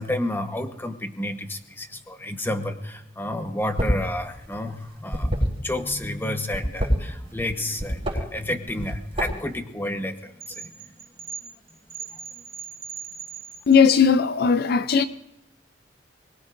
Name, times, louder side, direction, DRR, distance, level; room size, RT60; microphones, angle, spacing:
voice 1, 0.0-10.7 12.0-12.2, left 1 dB, 10° left, 1.1 m, -30 dB
sound 1, 3.6-4.1 4.4-6.0 6.4-7.5 7.8-8.2 8.7-9.5, equal, 35° right, 4.6 m, -26 dB
sound 2, 10.4-14.0, right 6 dB, 55° right, 1.9 m, -39 dB
voice 2, 13.7-15.0, left 6 dB, 60° left, 0.5 m, -17 dB
23.0 x 21.0 x 2.6 m
head